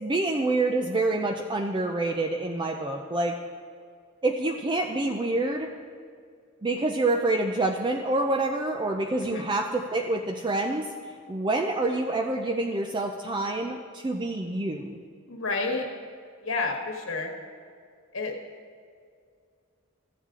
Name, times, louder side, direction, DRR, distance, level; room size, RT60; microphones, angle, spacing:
voice 1, 0.0-3.4 4.2-5.7 6.6-10.9 11.3-15.0, right 2 dB, 25° right, 3 dB, 0.4 m, -27 dB
voice 2, 15.3-15.9 16.4-17.3 18.1-18.3, left 3 dB, 70° left, 2 dB, 1.4 m, -29 dB
14.5 x 7.3 x 3.7 m, 2.2 s
head